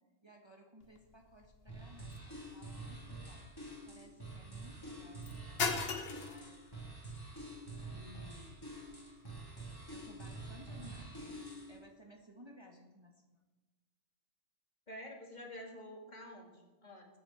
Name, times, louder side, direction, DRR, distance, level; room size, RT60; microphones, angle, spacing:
voice 1, 0.2-3.5 3.8-7.2 7.9-8.6 9.9-13.4, equal, 25° right, 0 dB, 1.6 m, -58 dB
sound 1, 0.8-10.9, left 5 dB, 60° left, 1.3 m, -44 dB
sound 2, 1.7-11.8, right 2 dB, 20° left, 3.0 m, -47 dB
voice 2, 14.9-17.1, left 1 dB, 40° left, 0 dB, 2.3 m, -49 dB
20.5 x 8.9 x 4.4 m, 1.2 s
omnidirectional pair, 1.2 m